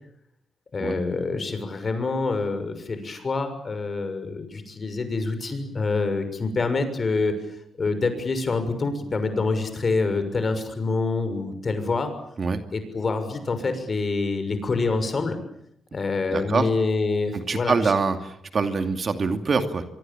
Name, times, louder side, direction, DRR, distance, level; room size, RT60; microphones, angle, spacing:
voice 1, 0.7-7.3 7.8-12.1 12.7-15.4 15.9-17.8, left 3 dB, 40° left, 9 dB, 6.5 m, -26 dB
voice 2, 16.3-16.7 17.3-19.9, right 4 dB, 45° right, 7 dB, 2.7 m, -24 dB
25.0 x 24.0 x 9.1 m, 0.74 s
cardioid pair, 90°, 0 cm